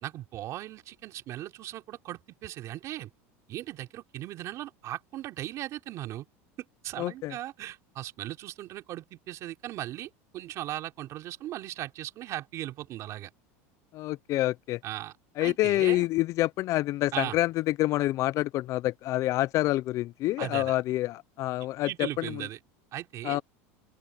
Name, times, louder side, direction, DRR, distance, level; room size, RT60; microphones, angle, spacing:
voice 1, 0.0-3.1 3.5-6.3 6.8-13.3 14.8-15.1 15.4-16.1 17.1-17.4 20.4-20.8 21.8-22.6 22.9-23.4, right 14 dB, 45° right, 3.5 m, -38 dB
voice 2, 7.0-7.3 13.9-14.8 15.4-22.4 23.2-23.4, left 16 dB, 45° left, 0.5 m, -27 dB
open air
supercardioid pair, 130°, 7 cm